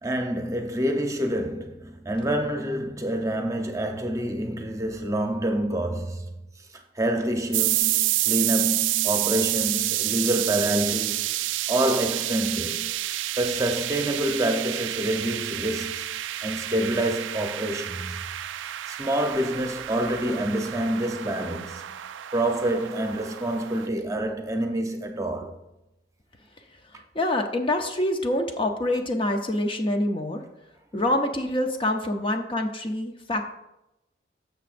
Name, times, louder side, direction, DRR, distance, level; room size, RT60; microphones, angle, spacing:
voice 1, 0.0-6.4 6.7-11.3 11.7-12.9 13.4-16.1 16.4-18.2 18.9-22.0 22.3-25.6, right 1 dB, 15° right, 0.8 m, -27 dB
sound 1, 7.5-23.9, right 15 dB, 85° right, 0.3 m, -29 dB
voice 2, 26.9-30.4 30.9-33.4, left 1 dB, 30° left, 0.6 m, -26 dB
13.0 x 6.8 x 2.6 m
head